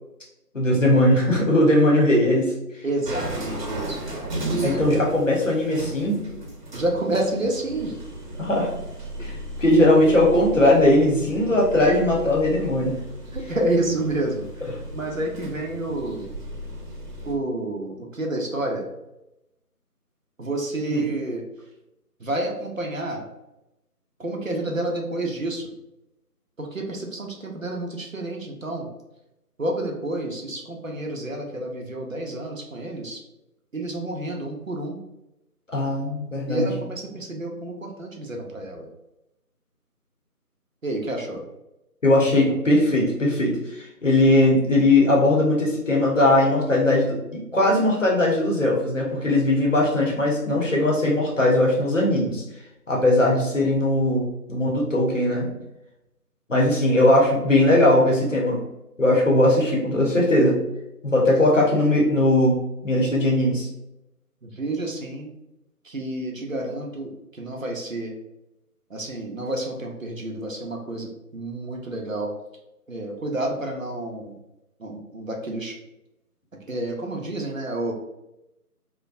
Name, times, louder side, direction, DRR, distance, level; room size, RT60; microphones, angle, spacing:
voice 1, 0.5-2.5 4.6-6.2 8.4-8.7 9.2-9.3 9.6-13.0 20.9-21.0 35.7-36.7 42.0-52.4 52.9-55.5 56.5-58.6 59.0-60.6 61.0-63.7, left 1 dB, 55° left, -3 dB, 0.8 m, -19 dB
voice 2, 2.8-4.0 4.5-5.0 6.7-8.0 9.2-9.3 13.3-16.3 17.2-18.9 20.4-21.4 22.2-23.3 24.2-25.7 26.6-28.9 29.6-33.2 33.7-35.0 36.5-38.9 40.8-41.4 64.4-65.3 65.8-68.2 68.9-72.3 72.9-74.4 74.8-75.7 76.7-77.9, right 1 dB, 60° right, 0 dB, 0.5 m, -29 dB
sound 1, 3.0-17.3, right 1 dB, 85° right, 0.8 m, -35 dB
2.4 x 2.2 x 2.4 m, 0.90 s
figure-of-eight pair, 170°, 47 cm